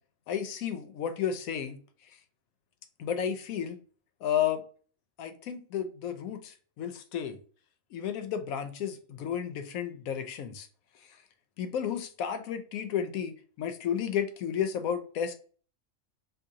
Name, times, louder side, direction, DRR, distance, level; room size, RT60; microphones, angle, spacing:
voice 1, 0.3-1.8 3.0-3.8 4.2-4.6 5.2-7.4 7.9-10.7 11.6-15.3, left 8 dB, 85° left, 1.0 m, -32 dB
2.8 x 2.6 x 3.6 m
omnidirectional pair, 1.4 m